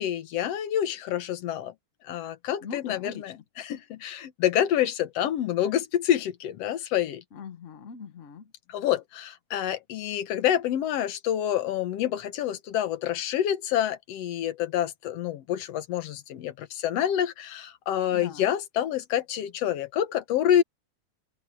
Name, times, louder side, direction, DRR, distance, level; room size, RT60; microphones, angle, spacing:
voice 1, 0.0-1.7 2.0-7.2 8.7-20.6, left 11 dB, 65° left, 1.9 m, -27 dB
voice 2, 2.6-3.2 7.3-8.5 18.1-18.5, left 6 dB, 85° left, 0.6 m, -41 dB
omnidirectional pair, 3.5 m